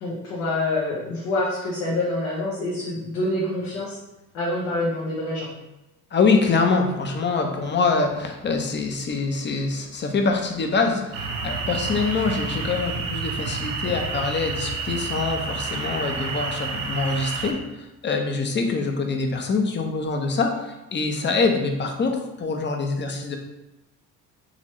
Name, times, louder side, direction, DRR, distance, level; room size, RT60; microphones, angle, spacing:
voice 1, 0.0-4.0 4.3-5.5, left 2 dB, 80° left, -7 dB, 1.2 m, -26 dB
voice 2, 6.1-23.4, left 4 dB, 30° left, 4 dB, 0.7 m, -24 dB
sound 1, 11.1-17.5, right 4 dB, 65° right, 1.0 m, -29 dB
4.0 x 3.0 x 3.0 m, 0.95 s
supercardioid pair, 75°, 35 cm